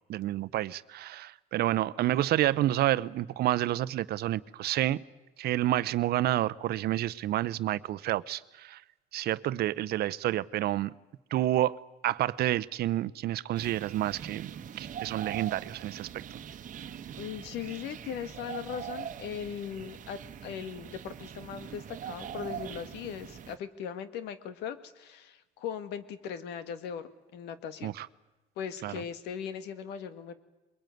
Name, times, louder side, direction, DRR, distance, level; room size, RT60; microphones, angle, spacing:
voice 1, 0.1-5.0 5.4-8.8 9.1-10.9 11.3-11.8 12.0-14.5 14.8-16.2 27.8-28.1 28.8-28.9, right 14 dB, 70° right, 17 dB, 0.8 m, -29 dB
sound 1, 13.5-23.6, right 9 dB, 50° right, 1.3 m, -42 dB
voice 2, 17.2-27.9 28.6-30.3, left 8 dB, 85° left, 12 dB, 1.8 m, -39 dB
22.5 x 22.0 x 9.3 m, 1.1 s
cardioid pair, 110°, 17 cm